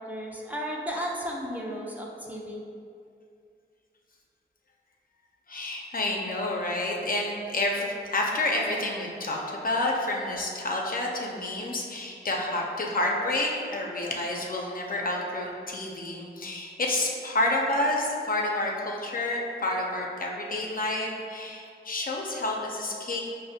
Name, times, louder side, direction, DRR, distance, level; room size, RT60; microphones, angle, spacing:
voice 1, 0.0-2.6, equal, 10° right, -3 dB, 0.5 m, -34 dB
voice 2, 5.5-23.2, left 2 dB, 50° left, -1 dB, 0.5 m, -29 dB
4.8 x 2.0 x 2.7 m, 2.3 s
cardioid pair, 55°, 19 cm